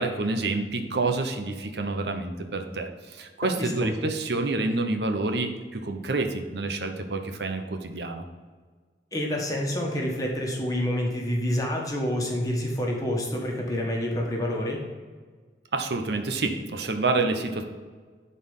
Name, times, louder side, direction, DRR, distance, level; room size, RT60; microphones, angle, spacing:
voice 1, 0.0-8.2 15.7-17.6, right 3 dB, 75° right, 5 dB, 0.9 m, -28 dB
voice 2, 3.5-3.9 9.1-14.8, left 1 dB, 20° left, -1 dB, 1.5 m, -28 dB
11.0 x 4.3 x 5.6 m, 1.5 s
head